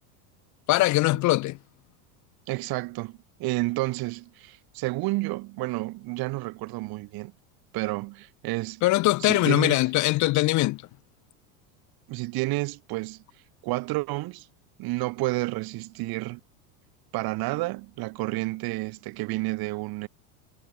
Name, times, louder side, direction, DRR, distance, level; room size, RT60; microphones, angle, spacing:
voice 1, 0.7-1.6 8.8-10.8, left 19 dB, 40° left, 0.7 m, -22 dB
voice 2, 2.5-7.3 7.7-8.8 9.2-9.8 12.1-13.2 13.6-14.5 14.8-16.4 17.1-20.1, right 22 dB, 55° right, 4.1 m, -30 dB
supercardioid pair, 125°, 43 cm